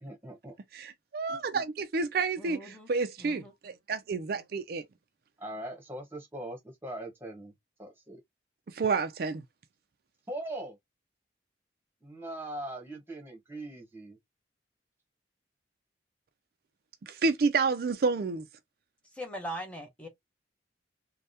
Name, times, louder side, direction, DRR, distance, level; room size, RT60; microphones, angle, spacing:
voice 1, 0.0-0.6 5.4-7.5 7.8-8.2 10.3-10.8 12.0-14.2, right 1 dB, 15° right, 1.1 m, -40 dB
voice 2, 0.7-4.8 8.8-9.4 17.0-18.4, right 4 dB, 55° right, 0.4 m, -29 dB
voice 3, 2.4-2.9 3.2-3.5 19.1-20.1, equal, 5° left, 0.7 m, -40 dB
3.4 x 2.2 x 2.6 m
head